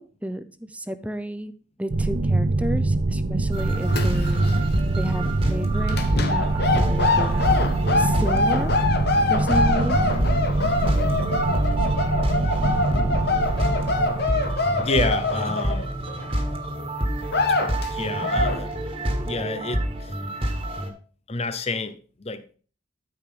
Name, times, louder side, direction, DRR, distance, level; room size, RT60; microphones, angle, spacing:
voice 1, 0.0-1.5 1.8-4.5 5.0-6.0 6.3-6.5 6.7-7.5 8.0-8.7 9.2-10.0, right 1 dB, 5° right, 0.6 m, -31 dB
sound 1, 1.9-15.2, right 2 dB, 50° right, 0.7 m, -24 dB
sound 2, 3.5-20.9, right 1 dB, 30° right, 1.6 m, -28 dB
sound 3, 3.6-4.5 4.8-5.0 5.9-16.4 16.8-16.9 17.2-17.9 18.2-18.6, left 2 dB, 55° left, 1.1 m, -25 dB
voice 2, 14.8-16.0 17.9-18.7 19.2-20.1 21.3-22.6, left 3 dB, 30° left, 0.7 m, -29 dB
13.0 x 5.1 x 3.8 m
head